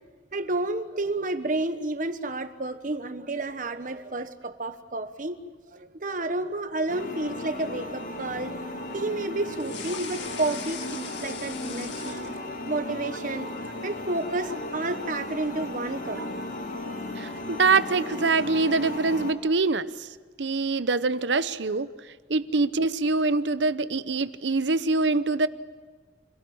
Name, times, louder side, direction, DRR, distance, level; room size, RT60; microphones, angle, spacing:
voice 1, 0.3-5.4 5.7-8.6 8.9-12.3 12.7-13.5 13.8-16.2, right 2 dB, 45° right, 10 dB, 1.2 m, -30 dB
sound 1, 6.9-19.3, left 2 dB, 45° left, 1.9 m, -36 dB
sound 2, 9.5-12.8 13.1-13.8, left 7 dB, 80° left, 1.9 m, -40 dB
voice 2, 17.2-20.1 20.4-25.5, right 3 dB, 80° right, 14 dB, 0.8 m, -24 dB
26.0 x 17.5 x 8.7 m, 1.5 s
head